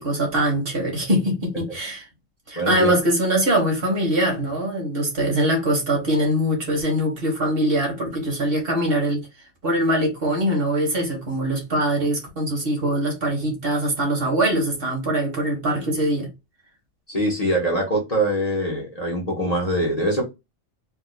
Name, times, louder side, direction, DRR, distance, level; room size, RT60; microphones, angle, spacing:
voice 1, 0.0-2.0 2.5-9.2 9.6-16.3, right 1 dB, 50° right, 1.6 m, -22 dB
voice 2, 2.6-2.9 17.1-20.2, right 1 dB, 35° left, 1.1 m, -23 dB
4.5 x 2.6 x 2.2 m
omnidirectional pair, 1.3 m